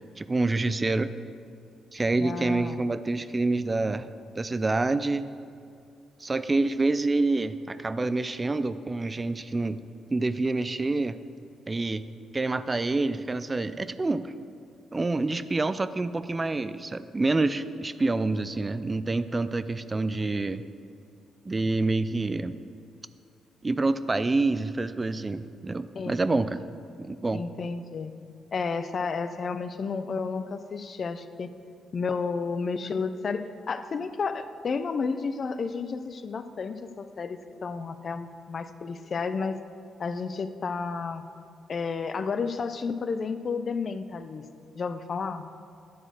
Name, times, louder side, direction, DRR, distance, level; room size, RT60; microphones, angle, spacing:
voice 1, 0.2-1.1 1.9-4.1 4.4-5.2 6.2-9.8 10.1-11.2 11.7-12.1 12.3-14.3 14.9-20.6 21.5-22.5 23.6-26.6 27.0-27.4, right 3 dB, 25° right, 13 dB, 0.4 m, -27 dB
voice 2, 2.2-2.8 25.9-26.5 27.3-28.1 28.5-31.5 31.9-39.6 40.0-41.2 41.7-44.4 44.8-45.4, left 5 dB, 50° left, 11 dB, 0.5 m, -31 dB
10.0 x 4.0 x 6.3 m, 2.5 s
supercardioid pair, 65°, 0 cm